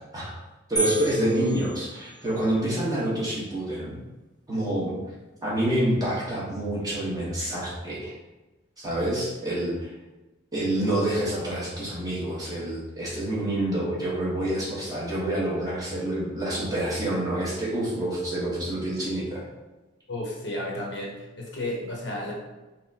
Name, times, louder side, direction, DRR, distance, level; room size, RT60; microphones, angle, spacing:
voice 1, 0.7-4.0 4.5-5.0 5.4-8.1 8.8-9.9 10.5-19.4, right 1 dB, 20° right, -7 dB, 1.1 m, -27 dB
sound 1, 0.8-2.5, right 2 dB, 20° left, 0.9 m, -32 dB
voice 2, 20.1-22.3, left 1 dB, 60° left, -2 dB, 0.9 m, -32 dB
5.4 x 2.1 x 2.7 m, 1.1 s
head